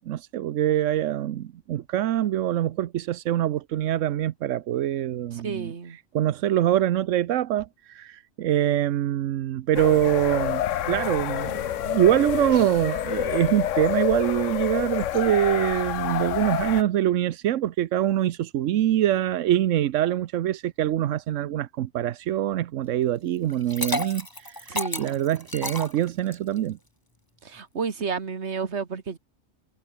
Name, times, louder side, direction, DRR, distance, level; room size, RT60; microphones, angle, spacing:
voice 1, 0.1-5.7 6.1-26.8, right 12 dB, 90° right, 1.0 m, -24 dB
voice 2, 5.3-6.0 16.5-16.8 24.7-25.2 27.4-29.2, right 5 dB, 65° right, 1.9 m, -31 dB
sound 1, 9.7-16.8, left 11 dB, 85° left, 1.1 m, -28 dB
Liquid, 23.5-26.6, left 1 dB, 15° left, 2.7 m, -31 dB
omnidirectional pair, 1.3 m